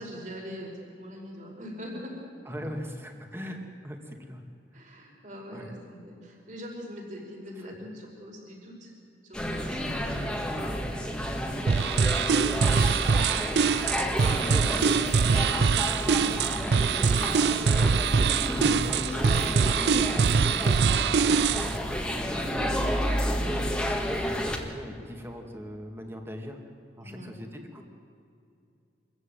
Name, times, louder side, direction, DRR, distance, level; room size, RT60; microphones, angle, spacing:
voice 1, 0.0-2.1 4.7-8.9 9.2-10.3 11.4-11.7 22.2-22.5 27.0-27.3, equal, 45° right, -1 dB, 5.3 m, -43 dB
voice 2, 2.4-4.4 5.5-5.7 7.6-7.8 9.9-10.1 11.6-12.0 13.2-13.7 14.1-17.3 17.6-23.1 23.3-26.6 27.0-27.8, equal, 15° right, 3 dB, 2.3 m, -40 dB
sound 1, 9.3-24.6, equal, 5° left, 1.9 m, -30 dB
sound 2, 11.7-21.8, right 5 dB, 70° right, 0.4 m, -24 dB
25.5 x 14.5 x 9.3 m, 2.5 s
head